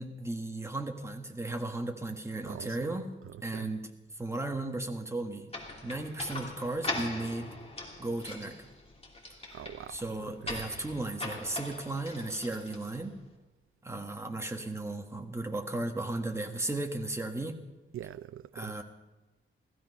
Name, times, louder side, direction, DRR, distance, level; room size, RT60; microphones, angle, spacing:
voice 1, 0.0-3.1 3.4-3.9 4.2-5.5 5.8-7.5 8.0-8.7 9.9-13.2 13.8-17.6 18.5-18.8, right 2 dB, 15° right, 1.5 m, -35 dB
voice 2, 2.5-3.0 3.2-3.7 9.5-10.6 17.9-18.7, right 11 dB, 80° right, 0.4 m, -44 dB
sound 1, 5.5-13.2, left 2 dB, 30° left, 2.8 m, -41 dB
16.0 x 15.0 x 5.5 m
wide cardioid pair, 140°, 21 cm